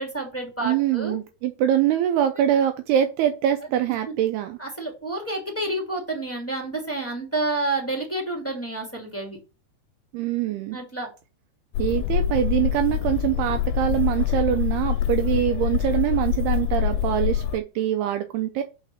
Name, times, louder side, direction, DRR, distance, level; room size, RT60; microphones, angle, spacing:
voice 1, 0.0-1.2 4.6-9.4 10.7-11.1, right 2 dB, 10° left, 0 dB, 0.9 m, -29 dB
voice 2, 0.6-4.6 10.1-10.8 11.8-18.6, right 11 dB, 80° right, 7 dB, 2.4 m, -24 dB
sound 1, 11.7-17.6, left 11 dB, 85° left, 2.7 m, -25 dB
6.4 x 4.9 x 6.2 m, 0.31 s
omnidirectional pair, 5.1 m